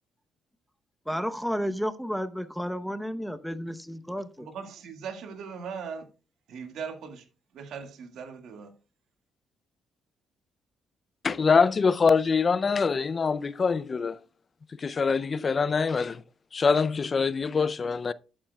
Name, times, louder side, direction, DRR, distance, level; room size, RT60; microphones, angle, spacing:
voice 1, 1.1-4.5, equal, ahead, 0.8 m, -32 dB
voice 2, 4.4-6.1 6.5-7.3 7.5-8.7, right 6 dB, 75° right, 1.8 m, -39 dB
voice 3, 11.2-14.2 14.8-16.2 16.5-18.1, left 5 dB, 40° left, 0.4 m, -24 dB
12.0 x 8.7 x 2.3 m
cardioid pair, 90°, 0 cm